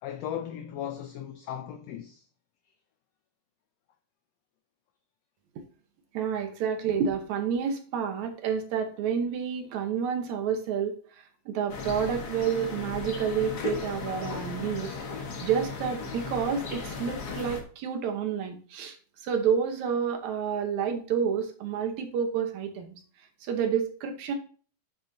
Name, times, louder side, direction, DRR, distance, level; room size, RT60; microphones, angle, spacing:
voice 1, 0.0-2.3, left 10 dB, 75° left, 1.5 m, -37 dB
voice 2, 6.1-14.9 15.4-19.0 19.2-23.0 23.4-24.3, right 7 dB, 70° right, 2.2 m, -29 dB
sound 1, 11.7-17.6, left 4 dB, 50° left, 1.2 m, -36 dB
9.4 x 6.8 x 2.7 m
omnidirectional pair, 3.6 m